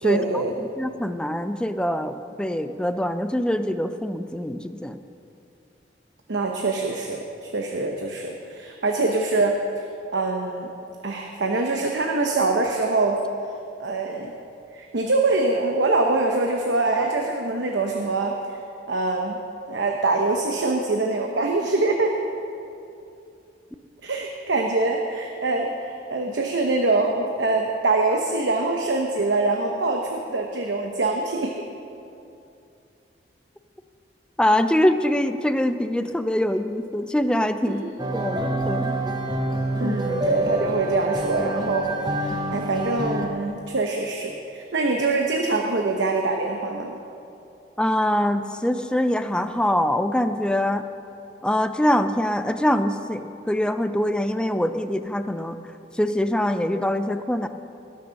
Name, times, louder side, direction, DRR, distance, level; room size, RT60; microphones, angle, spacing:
voice 1, 0.0-0.5 6.3-9.6 10.1-10.7 11.0-13.2 13.8-14.4 14.7-18.6 18.9-19.4 19.7-22.2 24.0-31.6 37.7-37.8 39.8-41.9 42.2-47.0, right 3 dB, 90° right, 2 dB, 0.9 m, -24 dB
voice 2, 0.6-5.0 34.4-37.8 38.1-39.0 39.8-40.0 47.8-50.8 51.4-55.6 56.0-57.5, left 1 dB, 5° left, 9 dB, 0.4 m, -24 dB
sound 1, 38.0-43.3, right 1 dB, 25° right, 0.8 m, -27 dB
19.0 x 6.6 x 5.8 m, 2.7 s
head